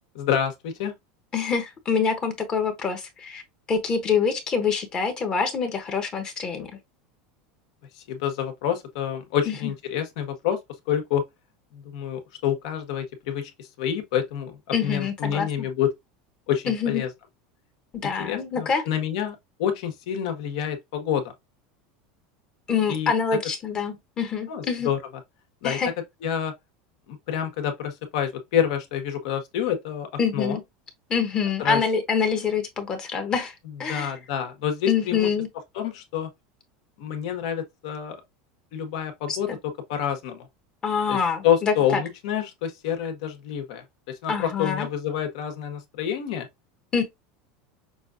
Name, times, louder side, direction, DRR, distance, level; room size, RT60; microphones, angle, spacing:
voice 1, 0.1-0.9 7.9-10.6 10.9-11.2 11.7-15.9 16.5-17.1 18.0-21.3 22.9-23.1 24.5-25.0 25.6-25.8 26.2-26.5 27.1-30.6 31.6-31.8 33.9-35.3 35.7-36.3 37.0-38.2 38.7-39.5 39.9-40.5 41.1-41.2 41.4-46.5, left 9 dB, 65° left, 1.4 m, -28 dB
voice 2, 1.3-3.4 3.7-6.7 9.5-9.7 14.7-15.7 16.7-17.0 18.0-18.8 22.7-24.9 25.6-25.9 30.2-30.6 31.1-34.1 34.9-35.5 39.3-39.6 40.8-42.0 44.3-44.9 46.9-47.0, left 6 dB, 25° left, 1.0 m, -25 dB
6.1 x 2.5 x 2.6 m
supercardioid pair, 165°, 4 cm